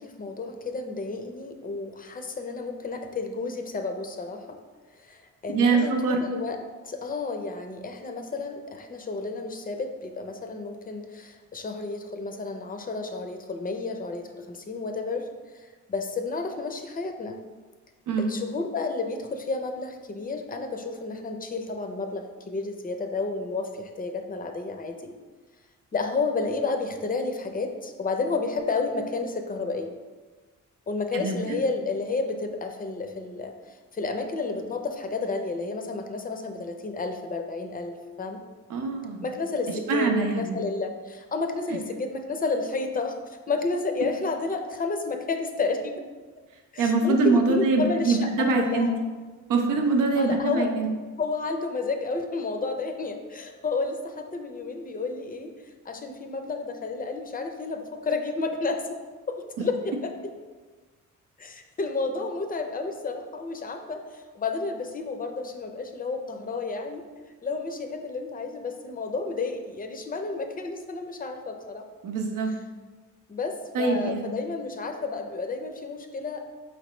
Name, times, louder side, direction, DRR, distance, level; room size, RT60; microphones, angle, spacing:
voice 1, 0.0-4.6 5.0-6.6 6.8-15.3 15.5-17.4 18.2-25.1 25.9-30.0 30.9-38.4 39.2-46.0 46.7-48.9 50.2-50.7 51.2-55.5 55.9-59.0 59.3-60.1 61.4-67.0 67.4-71.8 73.3-76.5, left 3 dB, 30° left, 5 dB, 0.5 m, -31 dB
voice 2, 5.5-6.2 18.1-18.3 31.1-31.6 38.7-39.2 39.9-40.6 46.8-48.9 49.5-50.9 59.6-59.7 72.0-72.5 73.7-74.3, right 3 dB, 90° right, 3 dB, 0.7 m, -24 dB
5.2 x 3.2 x 3.0 m, 1.4 s
cardioid pair, 95°, 31 cm